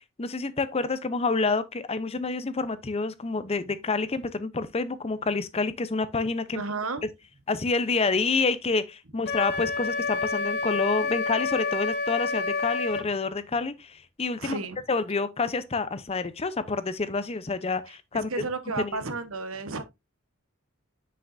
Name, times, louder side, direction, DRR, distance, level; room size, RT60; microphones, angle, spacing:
voice 1, 0.2-6.6 7.5-14.6 14.9-18.3 18.8-19.0, left 3 dB, 30° left, 0.6 m, -28 dB
voice 2, 6.5-7.1 13.0-13.1 14.4-14.8 17.9-19.8, right 3 dB, 70° right, 1.1 m, -33 dB
Wind instrument woodwind instrument, 9.3-13.1, left 4 dB, 50° left, 2.1 m, -28 dB
7.6 x 6.7 x 2.5 m
head